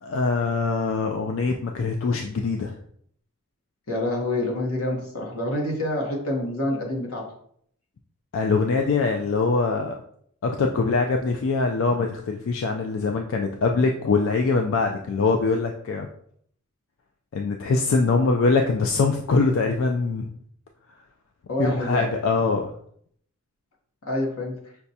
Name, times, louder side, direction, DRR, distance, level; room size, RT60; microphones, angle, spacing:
voice 1, 0.0-2.8 8.3-9.9 10.4-16.1 17.3-20.3 21.6-22.7, left 4 dB, 65° left, 3 dB, 0.3 m, -23 dB
voice 2, 3.9-7.3 21.5-22.1 24.1-24.6, left 1 dB, 90° left, -1 dB, 1.0 m, -27 dB
5.8 x 2.2 x 2.7 m, 0.64 s
head